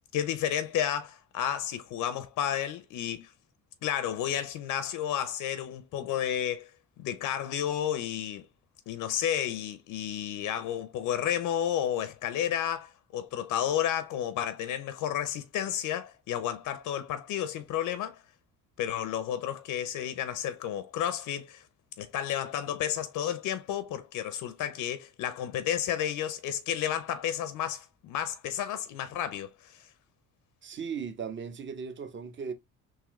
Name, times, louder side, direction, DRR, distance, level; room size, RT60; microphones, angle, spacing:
voice 1, 0.1-3.3 3.8-6.7 7.0-8.5 8.9-18.2 18.8-21.6 22.0-29.8, left 10 dB, 70° left, 0.6 m, -32 dB
voice 2, 30.6-32.5, right 6 dB, 35° right, 0.8 m, -37 dB
3.7 x 2.8 x 3.0 m
cardioid pair, 90°, 33 cm